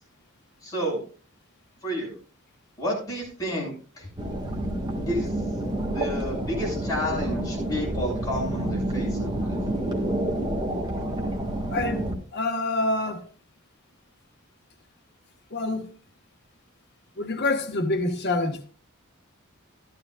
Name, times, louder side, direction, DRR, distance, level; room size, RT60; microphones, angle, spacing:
voice 1, 0.6-1.0 1.8-2.2 2.8-4.1 5.1-5.5 5.9-9.6, equal, 15° left, 6.7 m, -31 dB
sound 1, 4.2-12.2, right 1 dB, 20° right, 1.8 m, -29 dB
voice 2, 11.7-13.2 15.5-15.9 17.2-18.6, left 2 dB, 50° left, 1.3 m, -27 dB
14.0 x 12.0 x 2.4 m
head